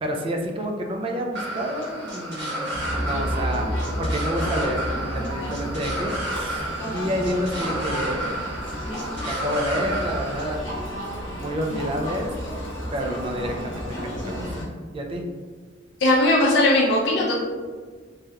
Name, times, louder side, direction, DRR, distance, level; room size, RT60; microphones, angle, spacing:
voice 1, 0.0-3.7 4.0-8.4 9.2-10.6 11.1-12.6 12.9-14.5 14.9-15.2, equal, 30° right, 2 dB, 0.3 m, -29 dB
sound 1, 1.4-10.6, right 1 dB, 60° right, 0.9 m, -32 dB
Crowd, 2.7-14.6, equal, 90° left, 0.8 m, -31 dB
voice 2, 16.0-17.4, left 1 dB, 65° left, -6 dB, 0.5 m, -18 dB
3.1 x 2.8 x 2.3 m, 1.5 s
head